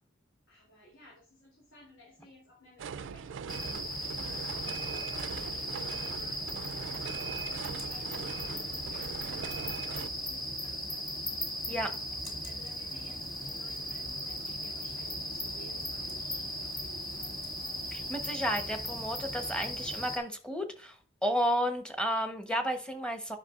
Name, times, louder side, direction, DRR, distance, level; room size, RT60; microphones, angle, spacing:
voice 1, 0.5-11.1 12.4-17.4, equal, 80° left, -3 dB, 3.0 m, -57 dB
sound 1, 2.8-10.1, right 6 dB, 65° right, 0.3 m, -41 dB
sound 2, 3.5-20.2, equal, 20° left, 2.3 m, -37 dB
voice 2, 17.9-21.0 21.2-23.4, equal, 5° left, 6 dB, 0.9 m, -32 dB
9.8 x 5.7 x 2.4 m, 0.39 s
head